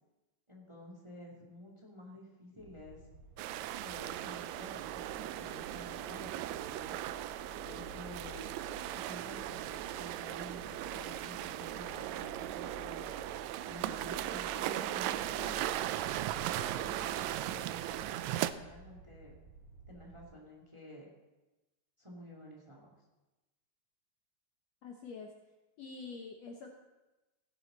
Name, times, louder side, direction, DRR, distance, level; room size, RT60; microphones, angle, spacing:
voice 1, 0.5-3.0 3.8-7.0 7.6-8.5 8.9-13.1 13.6-15.7 16.3-19.3 19.9-21.1 22.0-22.9, left 1 dB, 10° right, -3 dB, 2.3 m, -51 dB
sound 1, 2.6-20.3, equal, 35° right, 4.7 m, -54 dB
sound 2, 3.4-18.5, right 13 dB, 90° right, 1.6 m, -38 dB
voice 2, 24.8-25.3 25.8-26.7, left 4 dB, 65° left, 2 dB, 1.9 m, -46 dB
17.0 x 11.5 x 4.0 m, 1.1 s
omnidirectional pair, 3.7 m